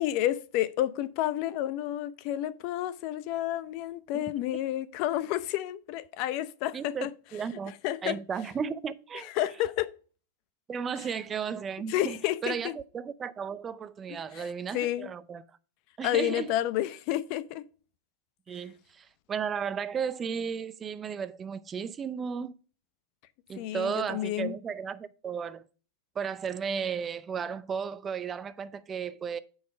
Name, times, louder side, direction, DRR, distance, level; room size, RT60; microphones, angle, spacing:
voice 1, 0.0-7.1 7.8-8.2 9.4-9.9 11.9-12.7 14.3-14.5 14.7-15.1 16.0-17.6 23.6-24.6, left 13 dB, 45° left, 0.6 m, -30 dB
voice 2, 6.7-7.7 8.0-9.3 10.7-15.4 16.0-16.5 18.5-22.6 23.5-25.6 26.2-29.4, right 7 dB, 20° right, 0.5 m, -34 dB
8.2 x 4.8 x 5.4 m
supercardioid pair, 145°, 0 cm